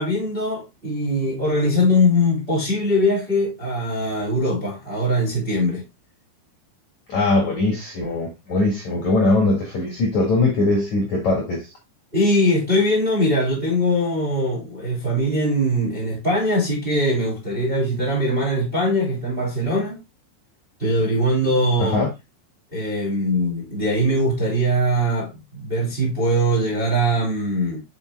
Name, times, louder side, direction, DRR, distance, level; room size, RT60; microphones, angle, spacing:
voice 1, 0.0-5.8 12.1-20.0 20.8-22.0 22.7-27.8, equal, 15° right, 2.1 m, -21 dB
voice 2, 7.1-11.7 21.8-22.1, left 2 dB, 55° left, 2.2 m, -21 dB
8.6 x 7.1 x 2.2 m
omnidirectional pair, 5.6 m